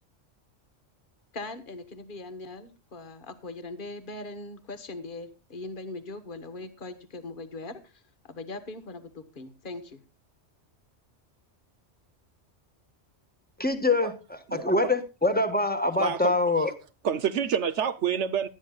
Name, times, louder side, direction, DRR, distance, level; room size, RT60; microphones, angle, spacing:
voice 1, 1.3-10.0, left 2 dB, 45° left, 1.6 m, -40 dB
voice 2, 13.6-16.7, left 2 dB, 10° left, 1.4 m, -25 dB
voice 3, 16.0-16.4 17.0-18.5, right 8 dB, 75° right, 1.1 m, -27 dB
19.0 x 12.5 x 2.4 m
omnidirectional pair, 1.2 m